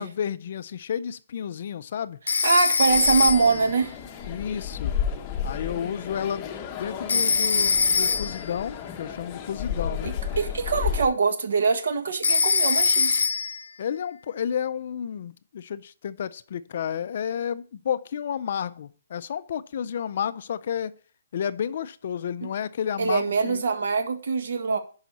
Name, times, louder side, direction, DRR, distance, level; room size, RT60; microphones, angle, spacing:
voice 1, 0.0-2.2 4.3-4.9 5.4-6.5 6.8-10.1 13.8-20.9 21.3-23.6, left 8 dB, 40° left, 0.4 m, -31 dB
Telephone, 2.3-3.7 7.1-8.5 12.2-13.6, left 5 dB, 80° left, 0.7 m, -23 dB
voice 2, 2.4-3.9 10.0-13.2 23.0-24.8, right 4 dB, 60° right, 1.6 m, -23 dB
sound 1, 2.9-11.1, left 8 dB, 20° left, 0.8 m, -32 dB
10.5 x 5.6 x 4.1 m
hypercardioid pair, 175°, 0 cm